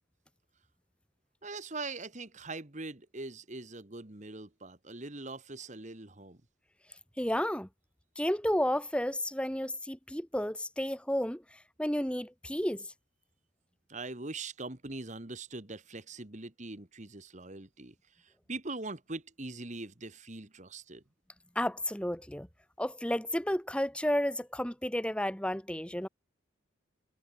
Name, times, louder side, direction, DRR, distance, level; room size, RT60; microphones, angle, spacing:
voice 1, 1.4-6.4 13.9-21.0, right 3 dB, 35° right, 1.7 m, -42 dB
voice 2, 7.2-7.7 8.2-12.9 21.6-22.5 22.8-26.1, equal, 5° left, 1.6 m, -32 dB
head